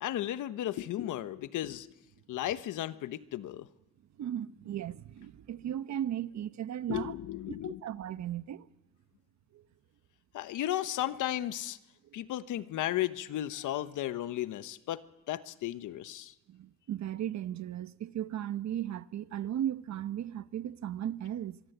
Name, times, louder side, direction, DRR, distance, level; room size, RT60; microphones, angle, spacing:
voice 1, 0.0-1.9 2.3-3.7 6.9-7.8 10.3-11.8 12.1-16.3, left 13 dB, 80° left, 1.2 m, -34 dB
voice 2, 4.2-7.1 7.5-8.6 9.5-9.6 12.0-12.2 16.5-21.6, right 11 dB, 65° right, 1.1 m, -36 dB
25.5 x 23.0 x 8.1 m
cardioid pair, 90°, 30 cm